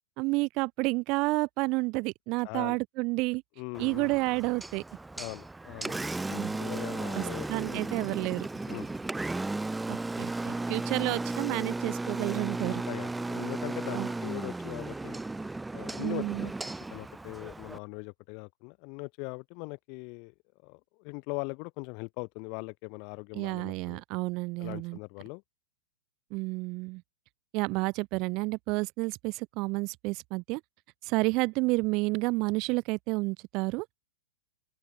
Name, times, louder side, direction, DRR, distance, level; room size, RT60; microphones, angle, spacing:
voice 1, 0.2-3.4 3.8-4.8 6.3-6.6 7.1-8.5 9.9-12.8 13.9-14.1 16.0-16.5 23.3-25.0 26.3-27.0 27.5-30.6 31.0-33.9, right 25 dB, 35° right, 1.0 m, -30 dB
voice 2, 2.4-2.8 3.6-4.1 5.2-6.1 6.6-7.9 8.7-9.0 12.9-15.2 15.7-16.5 16.9-20.3 20.6-24.0 24.6-25.4, left 35 dB, 40° left, 4.7 m, -41 dB
Engine, 3.7-17.8, right 2 dB, 5° right, 2.8 m, -35 dB
open air
figure-of-eight pair, 100°, 0 cm